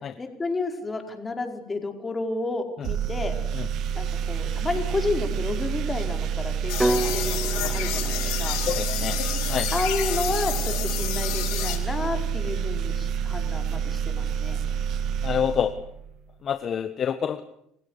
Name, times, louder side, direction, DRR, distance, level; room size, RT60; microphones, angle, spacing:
voice 1, 0.2-3.3 3.9-8.6 9.7-14.6, left 3 dB, 20° left, 5 dB, 4.9 m, -31 dB
sound 1, 2.8-16.2, right 8 dB, 60° right, 1.8 m, -28 dB
sound 2, 6.7-11.8, left 13 dB, 80° left, 4.7 m, -30 dB
sound 3, 6.8-10.9, right 2 dB, 10° right, 2.3 m, -32 dB
voice 2, 8.7-9.2 9.5-9.7 15.2-15.7 16.4-17.4, left 8 dB, 45° left, 10 dB, 1.3 m, -27 dB
28.5 x 16.5 x 8.3 m, 0.75 s
supercardioid pair, 90°, 0 cm